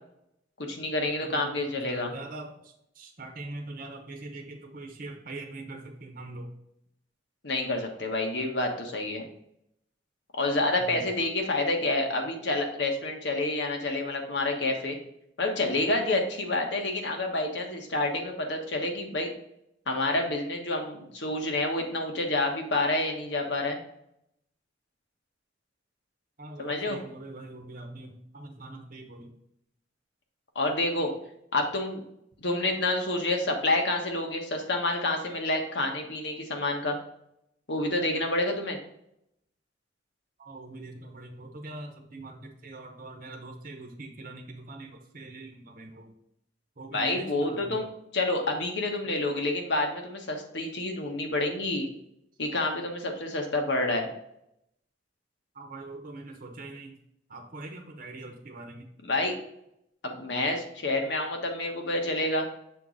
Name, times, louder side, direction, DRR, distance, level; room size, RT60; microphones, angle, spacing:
voice 1, 0.6-2.1 7.4-9.3 10.4-15.0 15.4-19.3 19.9-23.8 26.6-27.0 30.5-31.1 31.5-32.0 32.4-37.0 37.7-38.8 46.9-47.9 48.1-51.9 52.4-54.1 59.0-59.4 60.0-62.5, left 2 dB, 70° left, 3 dB, 1.3 m, -28 dB
voice 2, 1.2-6.5 10.8-11.1 26.4-29.3 40.4-46.1 46.8-47.9 49.0-49.1 55.5-57.0 57.3-58.9, right 2 dB, 50° right, 4 dB, 0.9 m, -43 dB
6.8 x 3.8 x 4.0 m, 0.77 s
head